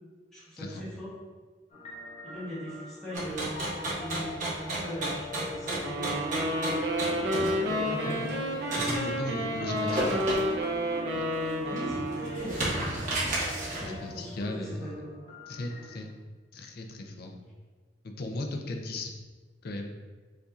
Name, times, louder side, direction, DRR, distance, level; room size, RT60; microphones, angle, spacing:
voice 1, 0.3-1.1 2.2-6.1 7.7-8.3 11.6-12.6 13.6-14.3 14.6-15.2, equal, ahead, -10 dB, 1.0 m, -40 dB
sound 1, 1.7-16.0, right 1 dB, 35° left, 0.8 m, -40 dB
sound 2, 3.1-9.0 9.8-10.7 11.2-11.3 11.7-14.0, right 1 dB, 45° right, 1.1 m, -33 dB
sound 3, 5.8-12.6, equal, 65° right, 0.6 m, -31 dB
voice 2, 8.8-10.5 11.1-11.3 13.8-14.9 15.5-16.1 16.5-17.4 18.0-19.1 19.6-19.9, left 2 dB, 55° left, 3 dB, 0.5 m, -37 dB
5.3 x 2.7 x 2.4 m, 1.4 s
head